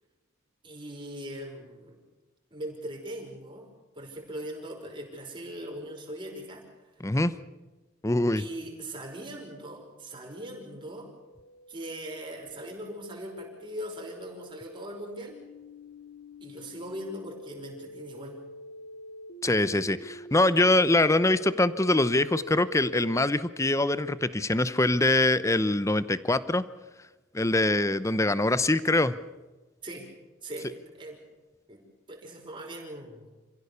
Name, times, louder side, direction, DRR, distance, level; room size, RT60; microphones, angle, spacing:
voice 1, 0.6-2.0 2.5-3.7 4.0-6.6 8.4-11.1 11.7-15.4 16.4-18.4 29.8-30.1 30.4-31.2 31.7-31.8 32.1-33.3, right 1 dB, 25° right, 0 dB, 5.4 m, -40 dB
voice 2, 7.0-7.3 8.0-8.5 19.4-26.6 27.3-29.1, left 2 dB, 15° left, 15 dB, 0.7 m, -24 dB
sound 1, 10.1-23.3, left 1 dB, 90° left, 2.5 m, -46 dB
27.5 x 16.0 x 6.9 m, 1.2 s
head